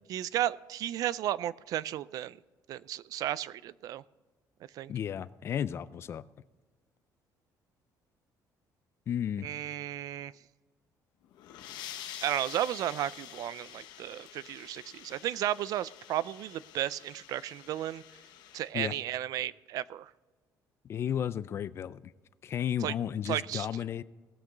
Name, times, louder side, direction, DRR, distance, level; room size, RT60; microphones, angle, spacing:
voice 1, 0.1-2.4 2.7-4.0 4.7-4.9 9.4-10.3 12.2-18.0 18.5-20.1 22.8-22.9 23.3-23.7, right 12 dB, 55° right, 19 dB, 0.4 m, -34 dB
voice 2, 4.9-6.2 9.1-9.5 18.7-18.9 20.8-22.0 22.4-24.0, left 9 dB, 35° left, 17 dB, 0.4 m, -33 dB
sound 1, 11.2-18.7, left 11 dB, 85° left, 1.1 m, -47 dB
18.5 x 8.3 x 3.9 m, 1.3 s
cardioid pair, 170°, 7 cm